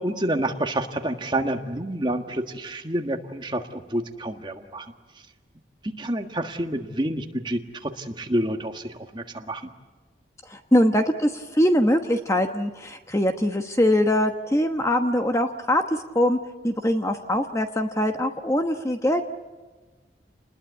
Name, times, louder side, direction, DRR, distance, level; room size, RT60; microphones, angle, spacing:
voice 1, 0.0-4.9 5.8-9.7, right 1 dB, 25° right, 5 dB, 1.6 m, -28 dB
voice 2, 10.5-16.4 16.6-19.2, left 1 dB, 15° left, 6 dB, 1.1 m, -22 dB
29.5 x 20.5 x 8.4 m, 1.3 s
head